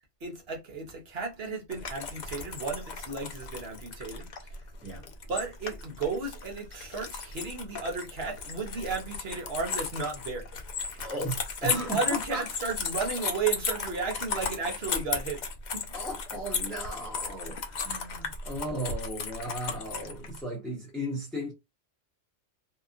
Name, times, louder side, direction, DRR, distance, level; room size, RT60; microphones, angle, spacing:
voice 1, 0.2-4.3 5.3-10.5 10.9-11.0 11.6-15.4 15.7-15.9, right 4 dB, 55° right, 0.9 m, -34 dB
sound 1, 1.7-20.4, left 5 dB, 60° left, 0.4 m, -36 dB
voice 2, 11.0-12.0 12.3-12.4 15.9-21.5, right 1 dB, ahead, 0.7 m, -36 dB
2.8 x 2.3 x 2.4 m
omnidirectional pair, 1.3 m